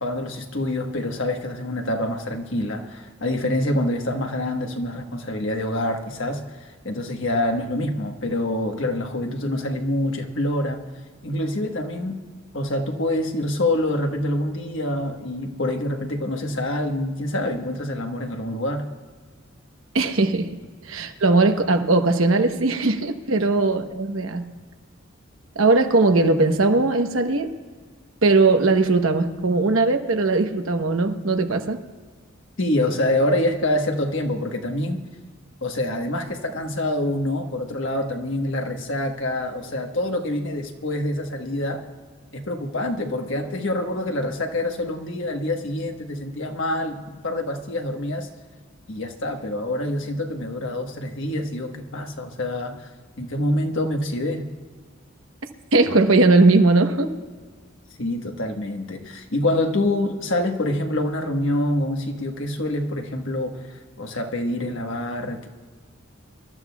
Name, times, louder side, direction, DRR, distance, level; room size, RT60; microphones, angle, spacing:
voice 1, 0.0-6.4 6.8-10.8 11.2-12.2 12.5-18.9 32.6-35.0 35.6-41.8 42.3-48.3 48.9-52.9 53.2-54.5 58.0-63.6 64.0-65.5, left 1 dB, 70° left, 4 dB, 1.3 m, -26 dB
voice 2, 19.9-20.5 20.9-24.4 25.6-27.5 28.2-31.8 55.7-57.1, right 3 dB, 90° right, 6 dB, 1.0 m, -19 dB
25.5 x 13.0 x 2.3 m, 1.5 s
head